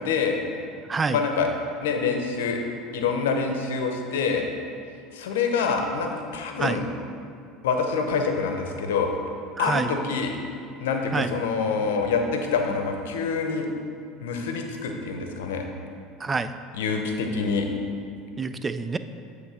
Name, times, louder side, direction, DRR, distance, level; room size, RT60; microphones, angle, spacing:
voice 1, 0.0-0.4 1.1-1.5 1.8-2.6 2.9-4.5 5.1-6.8 7.6-9.1 9.6-10.4 10.8-13.7 14.2-15.7 16.7-17.7, left 5 dB, 80° left, 3 dB, 0.7 m, -26 dB
voice 2, 9.6-9.9 11.1-11.3 16.2-16.5 18.4-19.0, right 4 dB, 25° right, 11 dB, 0.3 m, -26 dB
7.8 x 3.2 x 4.8 m, 2.4 s
hypercardioid pair, 85°, 0 cm